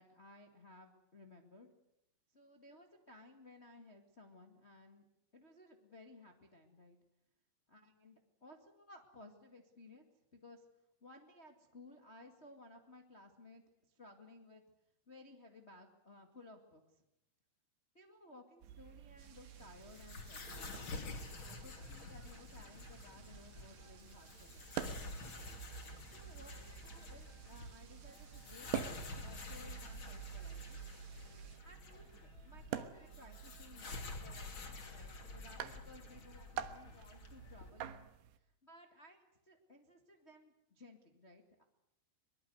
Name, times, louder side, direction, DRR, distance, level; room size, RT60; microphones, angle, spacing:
voice 1, 0.0-1.7 2.3-5.1 5.3-7.0 7.7-10.7 11.0-14.6 15.1-17.0 17.9-20.8 21.4-24.7 26.1-30.8 31.6-41.6, left 2 dB, 75° left, 4 dB, 0.6 m, -59 dB
sound 1, 18.6-38.4, right 10 dB, 70° right, 3.1 m, -49 dB
sound 2, 19.2-31.6, right 6 dB, 45° right, 2.9 m, -63 dB
sound 3, 19.6-37.7, left 3 dB, 35° left, 2.6 m, -49 dB
23.0 x 23.0 x 8.0 m, 0.84 s
omnidirectional pair, 5.5 m